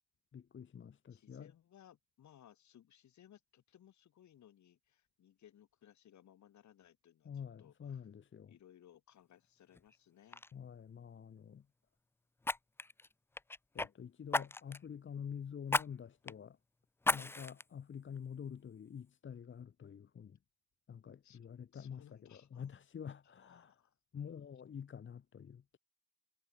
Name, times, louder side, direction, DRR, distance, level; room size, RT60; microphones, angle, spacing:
voice 1, 0.3-1.5 7.2-8.5 10.5-11.6 13.7-16.6 17.1-20.3 20.9-22.0 22.3-23.7 24.1-25.6, left 7 dB, 40° left, 1.2 m, -47 dB
voice 2, 1.1-8.1 8.5-10.4 21.2-22.7 23.4-23.9 24.2-24.4, left 10 dB, 70° left, 6.8 m, -63 dB
Fire, 9.7-10.0 10.3-10.5 12.4-13.9 14.3-14.9 15.7-15.9 16.3-16.4 17.0-17.6 18.2-18.3, left 2 dB, 10° left, 0.4 m, -35 dB
cardioid pair, 90°, 30 cm